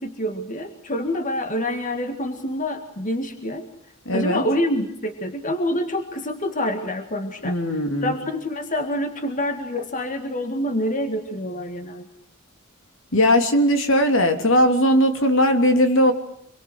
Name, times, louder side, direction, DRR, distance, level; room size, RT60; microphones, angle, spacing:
voice 1, 0.0-3.7 4.1-12.1, left 1 dB, 40° left, 7 dB, 2.0 m, -27 dB
voice 2, 4.0-4.4 7.4-8.1 13.1-16.1, equal, 65° left, 7 dB, 3.2 m, -18 dB
27.0 x 23.0 x 8.0 m, 0.71 s
head